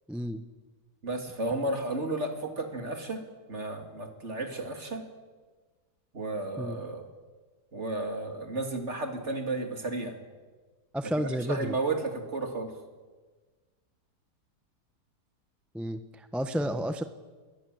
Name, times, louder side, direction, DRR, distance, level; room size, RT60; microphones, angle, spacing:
voice 1, 0.1-0.4 6.6-6.8 10.9-11.8 15.7-17.0, equal, ahead, 9 dB, 0.8 m, -31 dB
voice 2, 1.0-3.2 3.5-5.0 6.1-7.1 7.7-10.2 11.2-12.7, right 2 dB, 40° right, 4 dB, 3.3 m, -33 dB
27.5 x 21.0 x 7.9 m, 1.4 s
omnidirectional pair, 1.8 m